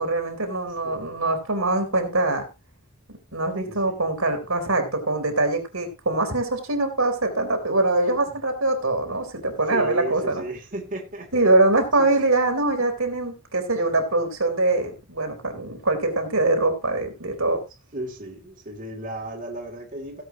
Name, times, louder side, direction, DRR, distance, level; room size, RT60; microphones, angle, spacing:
voice 1, 0.0-2.4 3.3-10.4 11.3-17.6, right 2 dB, 70° right, 3.6 m, -23 dB
voice 2, 3.6-4.0 8.2-8.3 9.1-9.2 9.7-11.5 12.0-12.1 12.8-12.9 17.9-20.2, right 2 dB, 35° right, 2.8 m, -35 dB
17.5 x 8.0 x 2.9 m
head